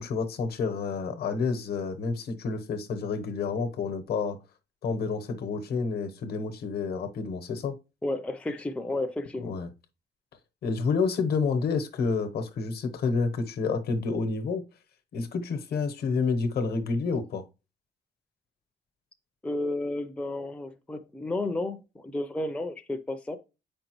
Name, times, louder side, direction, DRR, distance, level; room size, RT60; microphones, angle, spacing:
voice 1, 0.0-4.4 4.8-7.7 9.4-9.7 10.6-14.6 15.1-17.4, left 4 dB, 60° left, 1.0 m, -29 dB
voice 2, 8.0-9.6 19.4-23.4, left 2 dB, 5° left, 0.5 m, -32 dB
8.3 x 5.2 x 3.0 m
cardioid pair, 135°, 18 cm